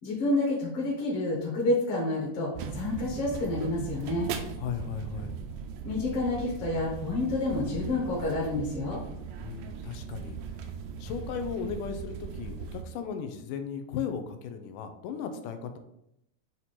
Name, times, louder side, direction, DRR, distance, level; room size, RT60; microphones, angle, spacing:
voice 1, 0.0-4.3 5.8-9.0, left 2 dB, 50° left, -4 dB, 2.0 m, -29 dB
sound 1, 2.5-12.8, right 6 dB, 80° right, 2.2 m, -39 dB
voice 2, 4.6-5.3 9.4-10.4 11.0-15.8, left 7 dB, 80° left, 7 dB, 2.1 m, -36 dB
8.0 x 2.9 x 4.2 m, 0.79 s
omnidirectional pair, 3.8 m